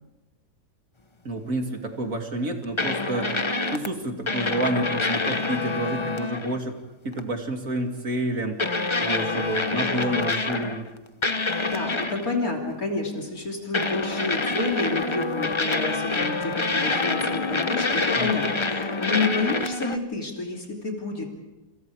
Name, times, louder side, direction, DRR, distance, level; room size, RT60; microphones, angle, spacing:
voice 1, 1.2-6.8 7.0-8.5 9.0-10.9 18.1-18.3, right 1 dB, 55° right, 3 dB, 3.0 m, -29 dB
sound 1, 2.8-3.9 4.3-6.6 7.1-7.3 8.6-10.9 11.2-12.3 13.7-20.0, left 3 dB, 25° left, 0.8 m, -26 dB
voice 2, 11.6-21.3, left 3 dB, 60° left, 0 dB, 3.7 m, -29 dB
28.5 x 26.5 x 4.9 m, 1.1 s
omnidirectional pair, 1.8 m